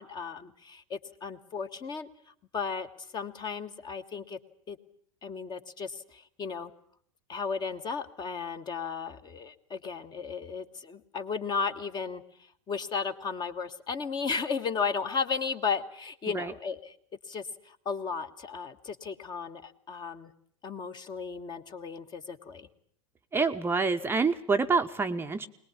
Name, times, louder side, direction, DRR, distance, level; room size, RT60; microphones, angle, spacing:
voice 1, 0.0-2.1 2.5-2.9 3.1-4.4 4.7-4.8 5.2-6.7 7.3-12.2 12.7-16.9 17.2-20.3 20.6-22.7, left 5 dB, 25° left, 9 dB, 1.5 m, -34 dB
voice 2, 23.3-25.5, right 4 dB, 15° right, 6 dB, 0.9 m, -27 dB
22.0 x 20.5 x 8.5 m, 0.62 s
figure-of-eight pair, 90°, 17 cm